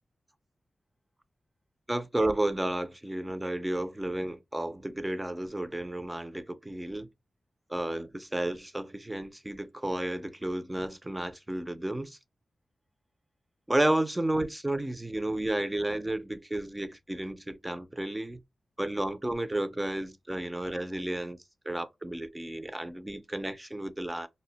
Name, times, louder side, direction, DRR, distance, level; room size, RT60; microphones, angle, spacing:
voice 1, 1.9-7.1 7.7-12.2 13.7-18.4 18.8-21.4 21.7-24.3, right 1 dB, 10° right, 0.4 m, -32 dB
2.4 x 2.1 x 3.8 m
wide cardioid pair, 140°, 0 cm